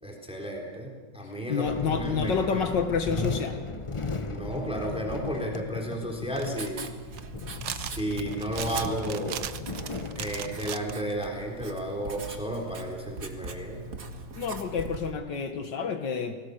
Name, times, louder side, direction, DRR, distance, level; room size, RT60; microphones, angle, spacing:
voice 1, 0.0-2.7 4.1-6.8 7.6-9.5 10.2-13.9, equal, 5° right, 0 dB, 3.7 m, -33 dB
voice 2, 1.5-3.6 14.4-16.3, left 6 dB, 75° left, 6 dB, 2.1 m, -29 dB
sound 1, 1.6-10.7, left 3 dB, 25° left, 0.7 m, -36 dB
Writing, 6.1-15.1, right 3 dB, 50° right, 2.1 m, -42 dB
sound 2, 6.3-11.3 12.0-12.8, right 10 dB, 80° right, 1.6 m, -39 dB
29.5 x 20.0 x 6.6 m, 1.4 s
omnidirectional pair, 2.0 m